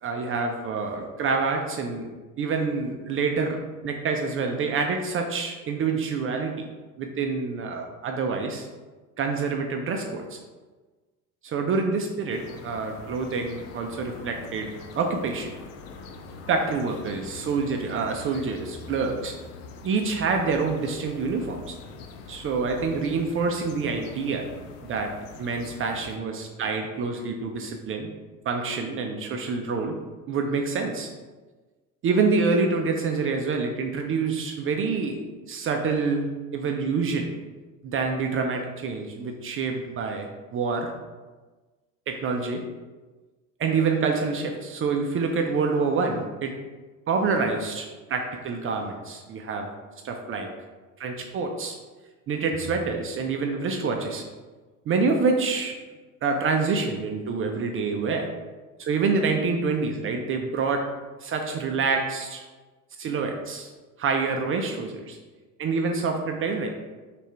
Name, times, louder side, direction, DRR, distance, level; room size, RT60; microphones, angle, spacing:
voice 1, 0.0-2.1 2.4-3.6 3.8-6.6 7.0-8.7 9.2-10.4 11.4-14.7 14.9-15.5 16.5-19.3 19.8-21.8 22.3-24.5 24.8-25.1 25.4-28.1 28.4-30.0 30.3-31.1 32.0-35.2 35.5-37.3 37.8-40.9 42.1-42.6 43.6-46.5 47.1-49.7 50.0-50.5 51.0-51.8 52.3-54.2 54.9-55.8 56.2-58.3 58.8-60.8 61.2-62.4 63.0-63.7 64.0-65.2 65.6-66.7, right 4 dB, 30° right, 3 dB, 0.5 m, -27 dB
Ambience Dry River - Tenerife, 12.3-26.2, left 4 dB, 60° left, 0.7 m, -43 dB
6.2 x 2.6 x 3.3 m, 1.3 s
figure-of-eight pair, 70°, 45 cm